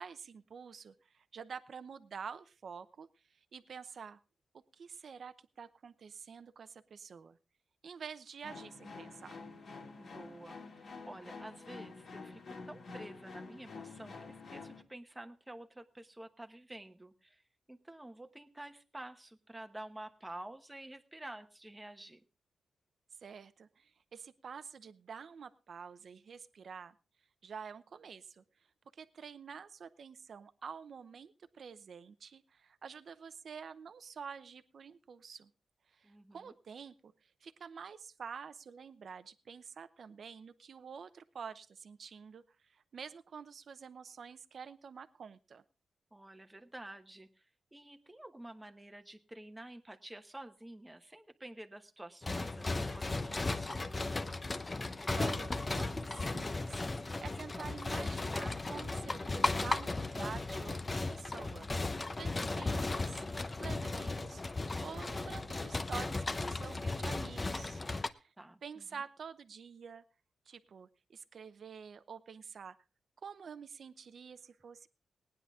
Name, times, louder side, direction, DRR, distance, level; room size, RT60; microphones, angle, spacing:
voice 1, 0.0-4.2 4.5-7.4 7.8-9.4 23.2-26.9 27.4-28.4 28.9-35.5 35.9-45.6 55.1-63.2 63.6-64.4 64.8-67.8 68.1-68.3 68.6-70.0 70.5-72.8 73.2-74.9, right 6 dB, 60° right, 12 dB, 0.7 m, -48 dB
sound 1, 8.4-14.8, left 4 dB, 65° left, 2.4 m, -48 dB
voice 2, 10.0-10.6 11.0-17.4 17.7-22.2 36.0-36.5 46.1-54.2 68.4-69.0, right 1 dB, 10° right, 6 dB, 1.1 m, -50 dB
sound 2, 52.2-68.1, left 3 dB, 25° left, 0.7 m, -36 dB
19.0 x 9.9 x 3.6 m, 0.33 s
wide cardioid pair, 120°, 0 cm